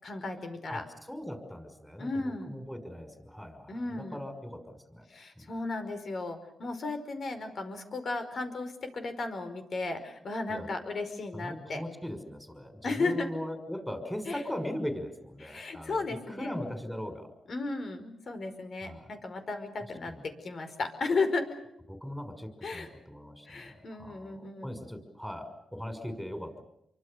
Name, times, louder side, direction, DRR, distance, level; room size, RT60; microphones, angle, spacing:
voice 1, 0.0-0.9 2.0-2.6 3.7-4.2 5.1-11.8 12.8-13.3 14.3-14.4 15.4-16.6 17.5-21.5 22.6-22.9 23.5-24.7, left 3 dB, 55° left, 7 dB, 5.1 m, -34 dB
voice 2, 0.7-5.0 5.4-5.5 10.5-10.7 11.3-17.3 18.8-19.1 20.1-20.3 21.9-26.6, equal, ahead, 7 dB, 6.0 m, -39 dB
28.0 x 24.0 x 6.8 m, 0.78 s
cardioid pair, 85°, 0 cm